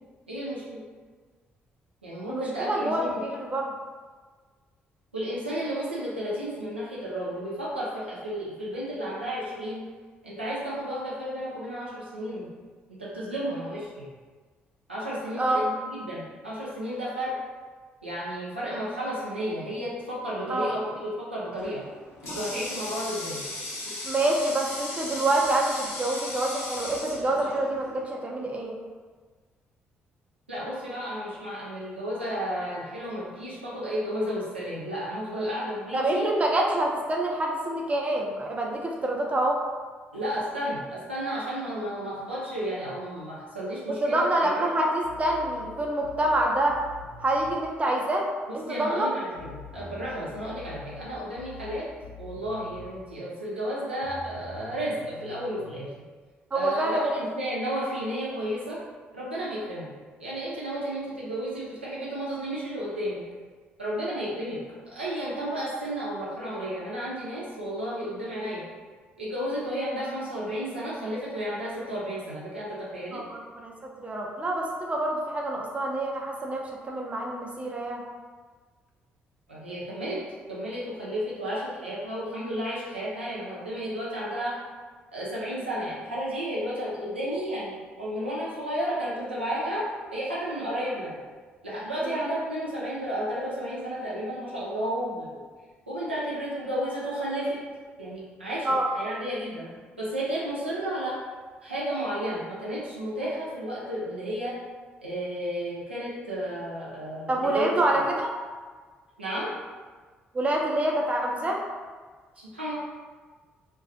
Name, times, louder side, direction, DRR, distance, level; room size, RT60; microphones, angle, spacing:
voice 1, 0.3-0.8 2.0-3.2 5.1-9.8 10.2-12.5 12.9-14.1 14.9-17.3 18.0-21.8 22.2-23.4 30.5-36.3 40.1-44.8 48.5-51.9 52.2-55.9 56.5-58.8 59.1-59.9 60.2-63.2 63.8-64.6 64.9-68.6 69.2-73.2 79.5-80.2 80.5-84.5 85.1-89.8 90.1-91.2 91.6-95.3 95.9-97.6 98.0-99.7 100.0-101.2 101.6-104.5 105.0-107.7 109.2-109.5 112.4-112.7, equal, 90° right, -8 dB, 0.4 m, -32 dB
voice 2, 2.3-3.7 13.5-13.6 15.4-15.6 20.5-20.7 24.0-28.7 35.9-39.6 43.9-46.8 47.2-48.3 48.5-49.1 56.5-57.2 73.1-73.7 74.0-78.0 90.7-90.8 92.0-92.2 98.6-98.9 107.3-108.3 110.3-111.6, right 1 dB, 25° right, -1 dB, 0.5 m, -26 dB
Water tap faucet, 21.6-28.1, left 1 dB, 55° left, 0.7 m, -37 dB
sound 1, 45.0-47.6 49.4-53.0 54.0-55.7, left 5 dB, 80° left, 0.3 m, -46 dB
2.3 x 2.2 x 2.4 m, 1.5 s
figure-of-eight pair, 45°, 6 cm